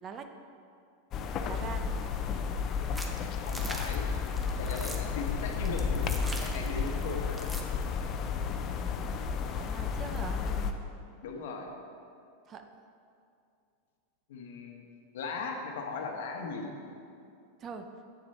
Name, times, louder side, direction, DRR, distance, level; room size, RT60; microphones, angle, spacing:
voice 1, 0.0-0.3 1.4-1.9 9.5-10.4 12.5-12.6 17.6-17.9, right 6 dB, 30° right, 7 dB, 0.6 m, -42 dB
sound 1, 1.1-10.7, left 6 dB, 40° left, 0.5 m, -32 dB
sound 2, 2.9-7.8, right 1 dB, 5° right, 0.8 m, -42 dB
voice 2, 3.5-4.1 4.6-7.5 11.2-11.7 14.3-14.8 15.1-16.7, left 4 dB, 75° left, 3 dB, 1.1 m, -38 dB
8.4 x 6.4 x 4.2 m, 2.5 s
hypercardioid pair, 115°, 0 cm